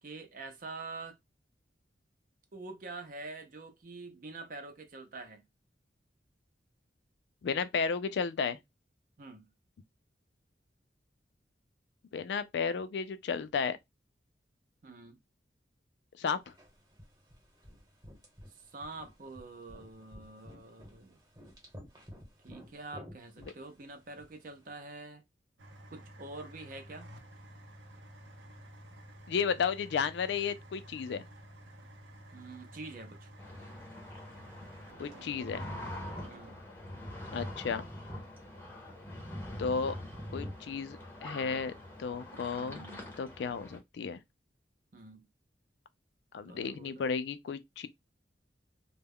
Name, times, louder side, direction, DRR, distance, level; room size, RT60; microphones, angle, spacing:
voice 1, 0.0-1.2 2.5-5.4 9.2-9.5 14.8-15.2 18.5-21.2 22.4-25.2 25.9-27.1 32.3-33.3 36.3-36.6 42.5-43.1 44.9-45.3 46.4-47.1, right 3 dB, 45° right, 0.5 m, -46 dB
voice 2, 7.4-8.6 12.1-13.8 16.2-16.4 29.3-31.3 35.0-35.7 37.3-37.8 39.6-40.0 40.3-41.0 41.2-41.7 42.0-42.8 43.2-44.2 46.3-47.9, left 6 dB, 70° left, 0.3 m, -33 dB
sound 1, 16.4-24.6, equal, 20° right, 1.0 m, -54 dB
sound 2, 25.6-42.5, right 1 dB, 90° right, 0.7 m, -54 dB
sound 3, 33.4-43.8, left 1 dB, 10° left, 0.6 m, -44 dB
2.2 x 2.0 x 3.5 m
head